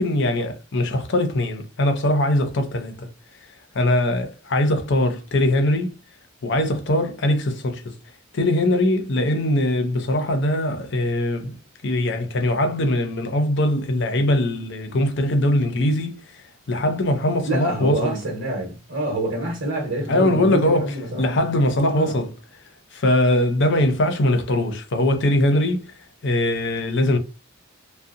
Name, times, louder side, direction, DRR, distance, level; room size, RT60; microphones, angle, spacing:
voice 1, 0.0-3.1 3.7-6.0 6.4-7.9 8.3-11.6 11.8-18.2 20.1-22.3 22.9-25.9 26.2-27.2, left 1 dB, 60° left, 0.6 m, -21 dB
voice 2, 17.4-21.4 21.9-22.2, right 1 dB, 65° right, 1.0 m, -27 dB
2.6 x 2.2 x 2.5 m
head